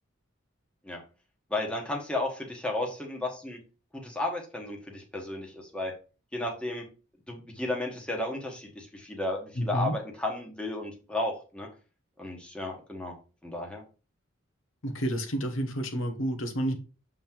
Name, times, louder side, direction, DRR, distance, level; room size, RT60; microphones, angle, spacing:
voice 1, 1.5-3.6 3.9-5.9 6.3-6.9 7.3-11.7 12.2-13.2 13.4-13.8, left 2 dB, 5° left, 1.3 m, -33 dB
voice 2, 9.6-9.9 14.8-16.8, equal, 75° left, 1.3 m, -30 dB
7.2 x 3.8 x 4.5 m
head